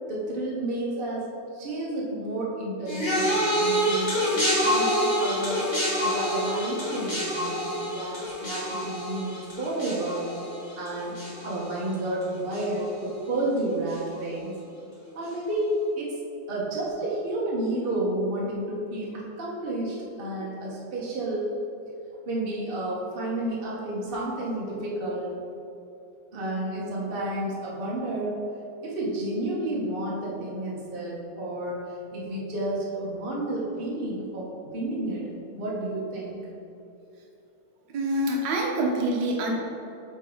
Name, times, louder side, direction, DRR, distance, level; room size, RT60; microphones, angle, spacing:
voice 1, 0.1-1.2 1.5-5.6 6.0-10.3 10.7-11.2 11.4-14.5 15.1-16.2 16.5-21.5 22.3-25.3 26.3-28.3 28.8-36.4, right 1 dB, 40° right, -5 dB, 0.8 m, -31 dB
sound 1, 2.9-12.2 12.5-13.0 13.9-14.0, equal, 20° left, 0.8 m, -27 dB
voice 2, 37.9-39.5, right 1 dB, 65° right, -1 dB, 1.4 m, -26 dB
8.2 x 3.3 x 3.7 m, 2.8 s
omnidirectional pair, 2.4 m